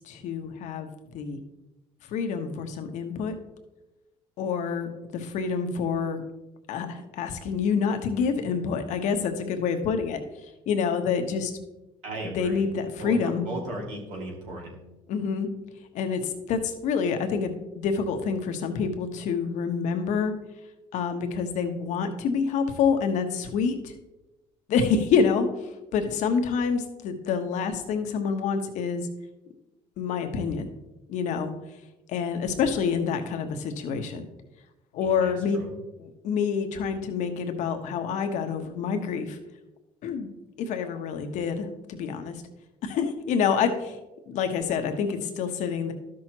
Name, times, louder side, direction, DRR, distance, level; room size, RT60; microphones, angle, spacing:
voice 1, 0.0-1.4 2.1-3.4 4.4-6.2 6.7-11.5 12.2-13.5 15.1-15.5 15.9-20.3 20.9-23.9 24.7-29.1 30.0-30.7 31.1-31.5 32.1-34.3 34.9-35.6 36.0-39.4 40.0-40.3 40.6-42.4 42.8-44.0 44.3-45.9, left 6 dB, 70° left, 6 dB, 1.1 m, -27 dB
voice 2, 12.0-12.6 13.0-14.8 35.0-35.7, right 1 dB, 75° right, -1 dB, 2.4 m, -36 dB
12.5 x 6.3 x 2.9 m, 0.99 s
supercardioid pair, 85°, 13 cm